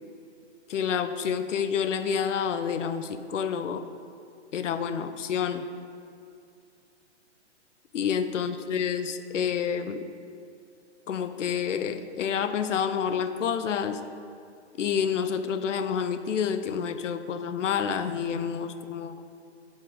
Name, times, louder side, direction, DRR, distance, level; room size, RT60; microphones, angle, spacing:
voice 1, 0.7-3.8 4.5-5.7 7.9-10.1 11.1-14.0 14.8-19.2, left 7 dB, 85° left, 10 dB, 0.6 m, -28 dB
5.2 x 4.9 x 5.3 m, 2.5 s
hypercardioid pair, 170°, 36 cm